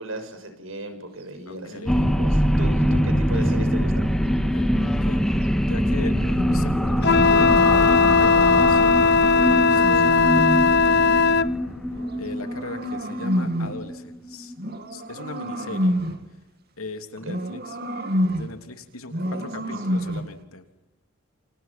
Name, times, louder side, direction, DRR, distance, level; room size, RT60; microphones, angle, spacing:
voice 1, 0.0-4.1 9.7-10.1 17.2-17.4 19.1-19.7, right 1 dB, 70° right, 8 dB, 6.7 m, -37 dB
voice 2, 1.5-2.1 3.1-3.5 4.5-11.3 12.2-14.5 14.9-16.0 16.8-17.8 18.3-20.7, left 2 dB, 90° left, 7 dB, 3.3 m, -38 dB
sound 1, 1.6-4.0 5.7-7.5 8.9-10.9 11.9-13.9 14.6-16.3 17.2-18.6 19.1-20.4, equal, 50° right, 2.8 m, -30 dB
sound 2, 1.8-14.7, equal, ahead, 1.7 m, -23 dB
Wind instrument woodwind instrument, 7.0-11.5, left 4 dB, 50° left, 0.9 m, -18 dB
29.0 x 27.5 x 6.1 m, 0.93 s
head